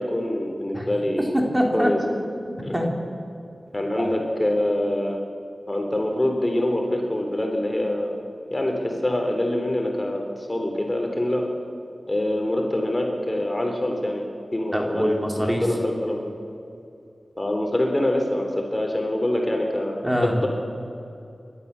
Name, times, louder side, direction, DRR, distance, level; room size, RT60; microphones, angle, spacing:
voice 1, 0.0-1.4 1.7-2.0 2.6-2.8 3.7-5.2 5.7-8.2 8.5-11.5 12.1-14.2 14.5-15.1 15.4-16.3 17.4-20.1 20.4-20.5, left 1 dB, 25° left, 2 dB, 3.4 m, -25 dB
voice 2, 1.2-1.9 2.5-2.9 4.0-4.1 14.7-15.7 20.0-20.4, equal, 15° right, 0 dB, 3.8 m, -24 dB
29.5 x 12.5 x 7.0 m, 2.6 s
wide cardioid pair, 55°, 0 cm